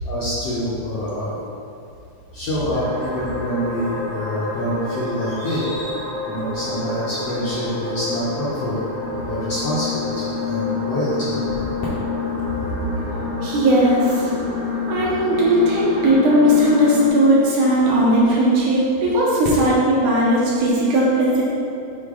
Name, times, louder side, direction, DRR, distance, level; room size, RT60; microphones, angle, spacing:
voice 1, 0.0-1.4 2.3-8.8 9.2-11.4, equal, 70° left, -9 dB, 1.6 m, -26 dB
sound 1, 2.7-17.1, left 3 dB, 90° right, 2.9 m, -28 dB
voice 2, 13.4-14.3 14.7-21.4, equal, 75° right, -6 dB, 2.6 m, -17 dB
6.6 x 4.4 x 3.7 m, 2.5 s
omnidirectional pair, 3.8 m